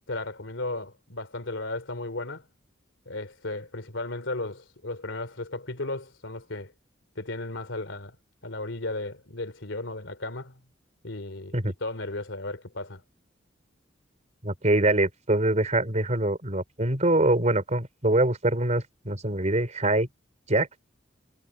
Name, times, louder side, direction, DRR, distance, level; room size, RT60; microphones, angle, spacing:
voice 1, 0.1-2.5 3.0-6.7 7.1-8.2 8.4-10.6 11.0-13.0, left 2 dB, 80° left, 3.1 m, -35 dB
voice 2, 14.4-20.1 20.5-20.7, right 2 dB, 40° right, 4.3 m, -24 dB
head